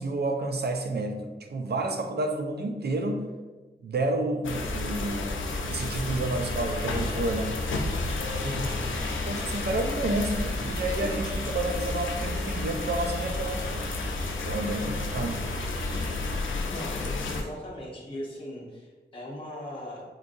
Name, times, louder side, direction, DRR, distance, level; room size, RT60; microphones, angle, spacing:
voice 1, 0.0-3.3 3.8-5.4 5.7-7.5 9.3-13.9 14.4-15.4, right 2 dB, 55° right, 4 dB, 0.4 m, -30 dB
sound 1, 4.4-17.4, left 3 dB, 80° left, 0.4 m, -32 dB
sound 2, 5.4-16.4, equal, 35° right, 1.5 m, -38 dB
voice 2, 8.4-8.8 16.7-20.0, left 1 dB, 25° left, -5 dB, 0.7 m, -38 dB
3.9 x 2.4 x 2.6 m, 1.3 s
cardioid pair, 50°, 20 cm